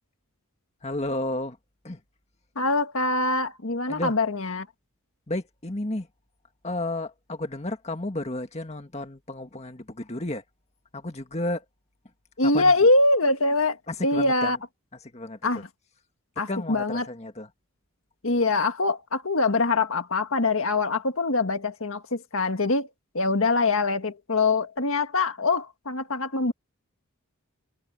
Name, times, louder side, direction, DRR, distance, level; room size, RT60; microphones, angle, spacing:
voice 1, 0.8-1.6 1.8-2.0 3.9-4.2 5.3-6.1 6.6-10.4 10.9-11.6 12.4-12.7 13.9-14.6 15.1-15.6 16.4-17.5, left 1 dB, 30° left, 1.8 m, -32 dB
voice 2, 2.5-4.7 12.4-13.8 14.0-14.6 15.4-15.7 16.4-17.0 18.2-22.9 23.1-26.5, left 3 dB, 65° left, 1.7 m, -23 dB
head